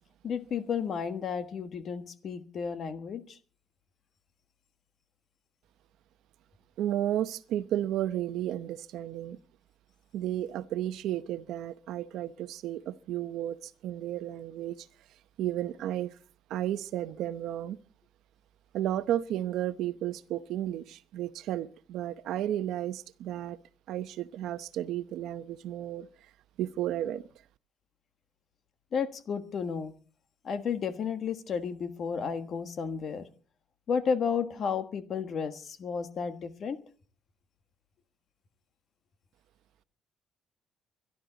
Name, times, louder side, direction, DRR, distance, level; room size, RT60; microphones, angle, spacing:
voice 1, 0.2-3.4 28.9-29.9 30.4-33.2 33.9-36.8, left 6 dB, 40° left, 1.4 m, -32 dB
voice 2, 6.8-9.4 10.1-14.9 15.4-16.1 16.5-17.8 18.7-23.6 23.9-26.1 26.6-27.2, right 12 dB, 75° right, 0.8 m, -33 dB
24.0 x 12.0 x 4.0 m
cardioid pair, 175°, 0 cm